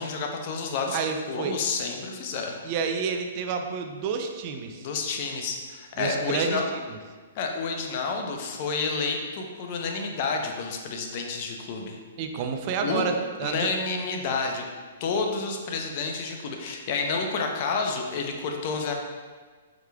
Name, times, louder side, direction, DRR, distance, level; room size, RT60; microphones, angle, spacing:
voice 1, 0.0-1.0 1.3-2.6 4.8-6.6 7.4-12.0 12.8-13.1 13.4-14.6 15.0-18.9, left 4 dB, 45° left, 2 dB, 0.6 m, -29 dB
voice 2, 0.9-1.6 2.6-4.9 6.0-7.0 12.2-13.7, right 5 dB, 40° right, 5 dB, 0.4 m, -29 dB
4.9 x 4.7 x 2.3 m, 1.5 s
hypercardioid pair, 140°, 0 cm